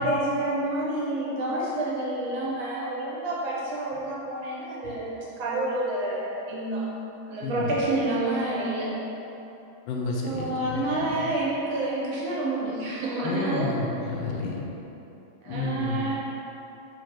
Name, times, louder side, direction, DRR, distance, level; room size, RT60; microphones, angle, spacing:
voice 1, 0.0-6.9 7.3-8.9 10.2-13.7 15.4-16.1, right 2 dB, 85° right, -6 dB, 1.7 m, -28 dB
voice 2, 7.4-7.9 9.9-11.2 13.2-14.6 15.5-16.1, left 3 dB, 80° left, -2 dB, 1.4 m, -31 dB
4.5 x 2.6 x 4.4 m, 3.0 s
omnidirectional pair, 2.2 m